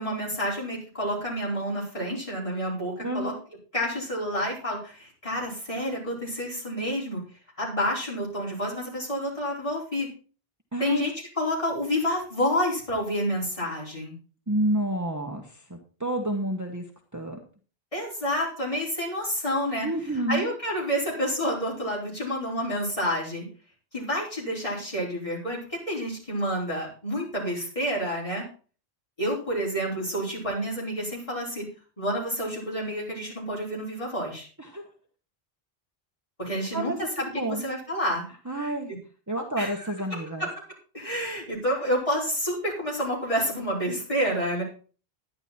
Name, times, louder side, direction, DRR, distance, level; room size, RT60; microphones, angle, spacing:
voice 1, 0.0-3.3 3.7-7.2 7.6-10.1 10.8-11.1 11.4-14.1 17.9-19.9 20.3-23.4 23.9-28.4 29.2-31.6 32.0-34.5 36.4-36.9 37.2-37.3 37.6-38.2 38.6-38.7 39.6-39.7 40.1-40.2 40.9-44.6, equal, 35° left, -4 dB, 5.0 m, -29 dB
voice 2, 3.0-3.3 10.7-11.0 14.5-16.8 17.1-17.4 19.8-20.5 34.6-34.9 36.5-37.7 38.4-38.9 39.3-40.5, right 1 dB, 15° right, 2 dB, 1.2 m, -30 dB
11.5 x 10.0 x 4.3 m, 0.39 s
omnidirectional pair, 1.0 m